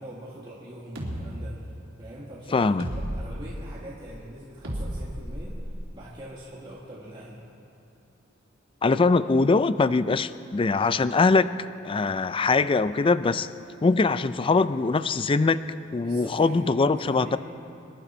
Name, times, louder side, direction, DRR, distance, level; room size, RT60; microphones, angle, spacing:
voice 1, 0.0-1.6 2.0-5.6 5.9-7.4 16.0-17.4, right 1 dB, 25° right, -7 dB, 1.8 m, -42 dB
sound 1, 1.0-1.2 2.8-3.3 4.6-5.8, equal, 85° right, 3.1 m, -33 dB
voice 2, 2.5-2.9 8.8-11.5 11.8-13.5 13.8-15.6 15.9-17.4, left 3 dB, 25° left, 14 dB, 0.4 m, -22 dB
25.5 x 12.0 x 4.4 m, 2.7 s
head